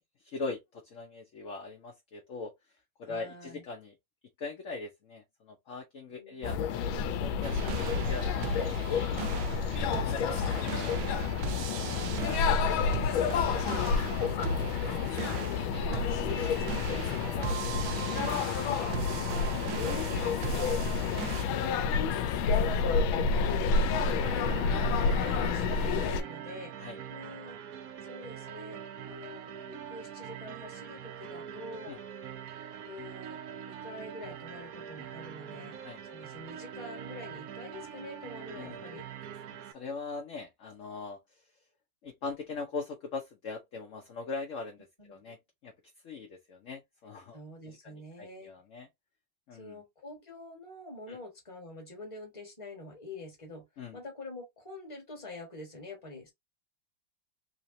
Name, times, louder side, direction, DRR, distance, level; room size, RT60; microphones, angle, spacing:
voice 1, 0.2-2.5 3.0-3.9 4.4-9.3 9.7-11.1 17.0-18.5 23.8-24.0 26.8-27.0 31.9-32.0 35.8-36.0 38.6-38.8 39.5-41.5 42.0-45.4 45.6-45.7 46.0-47.4 47.6-48.9 49.5-49.8 51.1-51.2 53.8-54.0, left 4 dB, 60° left, 0.8 m, -41 dB
voice 2, 3.0-3.6 6.1-6.5 11.9-14.5 14.8-17.1 18.5-26.7 27.1-27.6 28.0-32.0 32.8-33.4 33.6-35.8 36.1-39.0 45.0-45.3 47.3-48.5 49.5-53.7 53.9-56.3, left 2 dB, 20° left, 1.3 m, -46 dB
sound 1, 6.4-26.2, left 5 dB, 80° left, 1.4 m, -29 dB
sound 2, 7.4-21.5, right 7 dB, 85° right, 1.4 m, -38 dB
sound 3, 23.7-39.7, right 8 dB, 70° right, 0.9 m, -44 dB
3.9 x 3.0 x 2.6 m
omnidirectional pair, 2.2 m